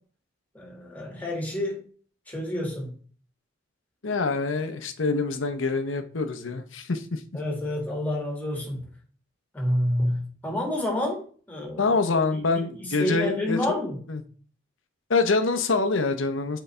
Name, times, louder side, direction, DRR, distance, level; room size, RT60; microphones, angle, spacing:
voice 1, 0.5-1.8 2.3-3.0 7.3-8.9 9.5-11.9 12.3-14.0, left 1 dB, 10° left, 1.8 m, -29 dB
voice 2, 4.0-7.2 11.8-13.6 14.1-14.2 15.1-16.6, left 3 dB, 70° left, 0.8 m, -25 dB
8.0 x 4.1 x 3.3 m
head